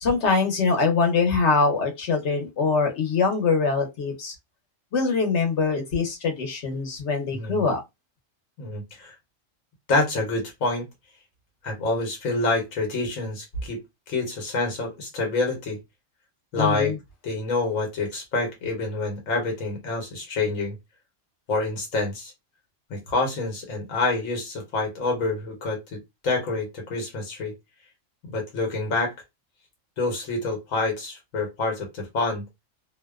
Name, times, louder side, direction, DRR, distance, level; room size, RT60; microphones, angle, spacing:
voice 1, 0.0-4.3 4.9-7.8 16.6-17.0, left 4 dB, 60° left, 1.0 m, -23 dB
voice 2, 7.3-7.6 8.6-9.1 9.9-10.9 11.6-13.8 14.1-15.8 16.5-16.9 17.2-20.8 21.5-22.3 22.9-27.5 28.3-29.1 30.0-32.5, left 3 dB, 85° left, 1.2 m, -27 dB
2.6 x 2.1 x 2.3 m
omnidirectional pair, 1.4 m